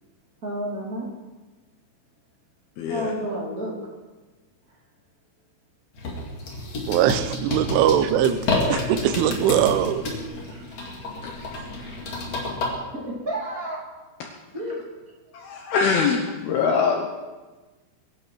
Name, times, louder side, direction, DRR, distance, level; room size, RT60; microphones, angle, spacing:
voice 1, 0.4-1.1 2.9-3.8 12.5-13.8 14.5-14.9, right 1 dB, 25° right, -3 dB, 2.1 m, -31 dB
voice 2, 2.8-3.1 8.7-8.8 11.2-11.5 14.2-14.3 15.3-17.1, left 5 dB, 75° left, 2 dB, 2.4 m, -24 dB
sound 1, 5.9-12.7, left 2 dB, 40° left, 2.9 m, -29 dB
voice 3, 6.9-8.4 8.7-10.0, right 10 dB, 85° right, 11 dB, 3.2 m, -21 dB
22.5 x 11.5 x 4.7 m, 1.2 s
omnidirectional pair, 5.5 m